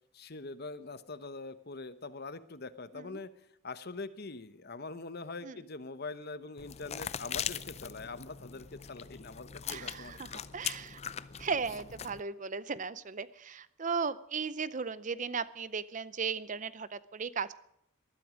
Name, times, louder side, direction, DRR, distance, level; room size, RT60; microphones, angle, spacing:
voice 1, 0.1-3.3 3.6-10.4, left 3 dB, 45° left, 13 dB, 0.9 m, -43 dB
sound 1, 6.6-12.2, left 8 dB, 30° left, 0.5 m, -41 dB
voice 2, 9.7-11.0 11.4-17.5, right 5 dB, 35° right, 16 dB, 0.5 m, -36 dB
19.5 x 13.0 x 5.1 m, 0.78 s
head